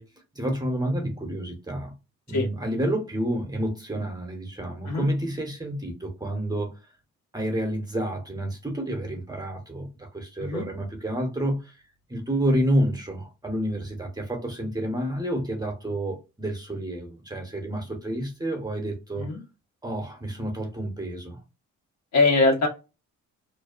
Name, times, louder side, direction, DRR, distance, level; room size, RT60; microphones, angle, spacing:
voice 1, 0.3-2.0 2.3-6.8 7.3-11.8 12.1-19.3 19.8-21.4, right 1 dB, 15° right, 0.8 m, -29 dB
voice 2, 22.1-22.7, left 3 dB, 65° left, 1.1 m, -22 dB
2.5 x 2.3 x 2.3 m
cardioid pair, 90°, 30 cm